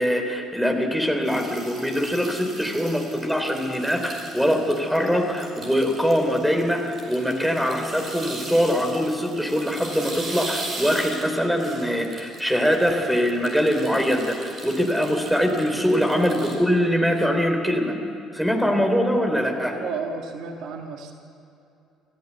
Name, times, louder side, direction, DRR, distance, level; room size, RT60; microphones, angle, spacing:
voice 1, 0.0-18.0 18.3-19.8, equal, ahead, 4 dB, 3.7 m, -23 dB
sound 1, 1.2-16.5, right 2 dB, 40° right, 5.3 m, -39 dB
voice 2, 19.7-21.1, right 5 dB, 55° right, 4 dB, 1.6 m, -32 dB
26.5 x 14.5 x 8.2 m, 2.7 s
figure-of-eight pair, 50°, 0 cm